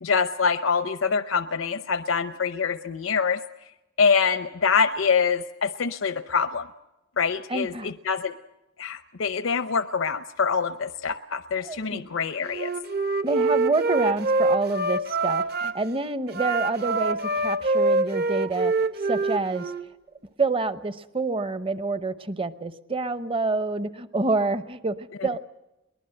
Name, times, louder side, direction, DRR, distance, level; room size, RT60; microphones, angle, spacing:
voice 1, 0.0-3.4 4.0-6.7 7.2-8.3 8.8-12.7, left 5 dB, 75° left, 10 dB, 0.7 m, -25 dB
voice 2, 7.5-7.9 11.6-12.0 13.2-18.7 19.1-19.7 20.4-25.4, right 3 dB, 25° right, 12 dB, 0.8 m, -27 dB
Wind instrument woodwind instrument, 12.4-15.7 16.3-19.9, right 3 dB, 50° right, 1.0 m, -25 dB
22.5 x 20.0 x 7.8 m, 0.95 s
head